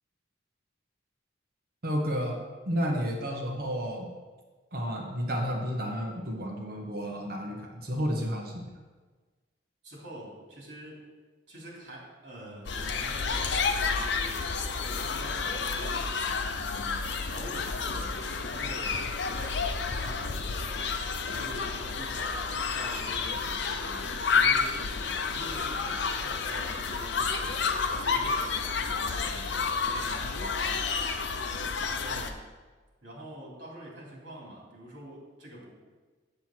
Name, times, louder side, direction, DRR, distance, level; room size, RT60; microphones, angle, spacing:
voice 1, 1.8-2.4 2.7-4.1 4.7-8.7, equal, 50° right, 1 dB, 1.2 m, -31 dB
voice 2, 9.8-11.0 11.5-16.1 16.6-20.9 21.3-27.3 27.9-31.4 31.9-32.4 33.0-35.7, right 1 dB, 70° right, -3 dB, 3.1 m, -46 dB
sound 1, 12.7-32.3, left 5 dB, 70° left, 0.7 m, -30 dB
7.9 x 7.7 x 4.5 m, 1.4 s
head